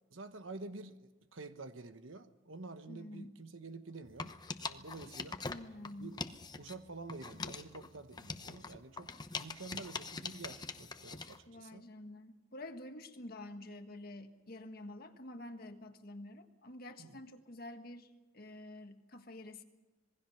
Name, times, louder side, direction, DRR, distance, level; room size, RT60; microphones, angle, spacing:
voice 1, 0.1-5.4 6.0-6.2 6.6-11.9 17.0-17.2, right 3 dB, 85° right, 1.2 m, -49 dB
voice 2, 2.9-3.4 5.5-6.2 11.5-19.6, left 1 dB, 50° left, 1.6 m, -48 dB
sound 1, 4.1-6.8 7.1-11.4, left 4 dB, 20° left, 0.9 m, -43 dB
26.5 x 20.0 x 5.8 m
head